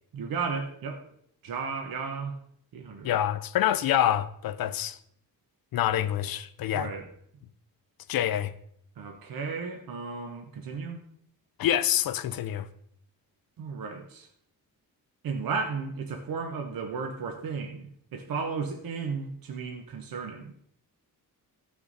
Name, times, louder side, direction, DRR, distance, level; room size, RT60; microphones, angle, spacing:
voice 1, 0.1-1.0 1.4-2.3 2.7-3.1 6.7-7.1 9.0-11.0 13.6-14.3 15.2-20.5, right 5 dB, 65° right, 1.1 m, -34 dB
voice 2, 3.0-5.0 5.7-6.9 8.1-8.5 11.6-12.7, left 11 dB, 65° left, 0.6 m, -26 dB
14.0 x 6.1 x 4.0 m
wide cardioid pair, 175°, 38 cm